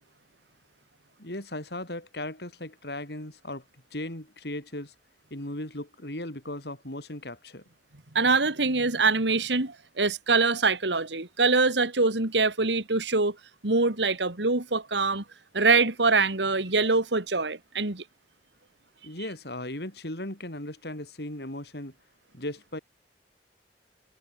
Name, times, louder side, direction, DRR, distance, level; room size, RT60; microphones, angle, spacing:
voice 1, 1.2-3.6 3.9-4.9 5.3-7.6 19.0-21.9 22.3-22.8, left 1 dB, 65° left, 5.6 m, -37 dB
voice 2, 8.1-13.4 13.6-15.2 15.5-18.0, right 3 dB, 90° right, 2.7 m, -24 dB
head